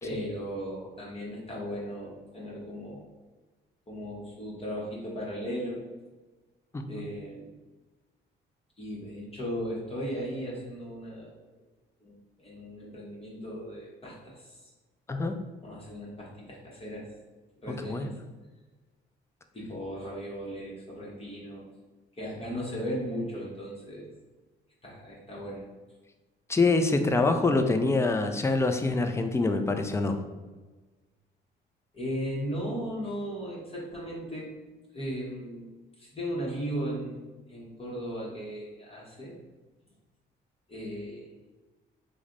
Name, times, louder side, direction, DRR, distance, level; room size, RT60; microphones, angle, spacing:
voice 1, 0.0-3.0 3.9-5.8 6.9-7.5 8.8-11.3 12.0-14.7 15.6-17.1 17.6-18.2 19.5-21.6 22.1-24.1 24.8-25.6 31.9-34.5 34.9-35.7 36.0-37.2 37.5-39.4 40.7-41.3, equal, 30° left, -5 dB, 0.9 m, -36 dB
voice 2, 6.7-7.0 15.1-15.4 17.8-18.1 26.5-30.2, left 3 dB, 15° left, 6 dB, 0.3 m, -25 dB
3.2 x 2.1 x 3.7 m, 1.2 s
cardioid pair, 90°, 20 cm